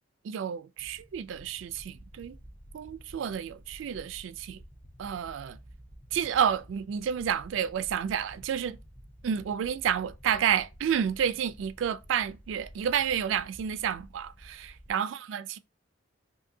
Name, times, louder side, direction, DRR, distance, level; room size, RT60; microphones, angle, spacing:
voice 1, 0.2-2.4 2.7-4.6 5.0-5.6 6.1-8.8 9.2-15.6, right 8 dB, 70° right, 0.3 m, -30 dB
sound 1, 0.8-14.9, equal, 10° left, 0.5 m, -51 dB
2.6 x 2.6 x 3.7 m
head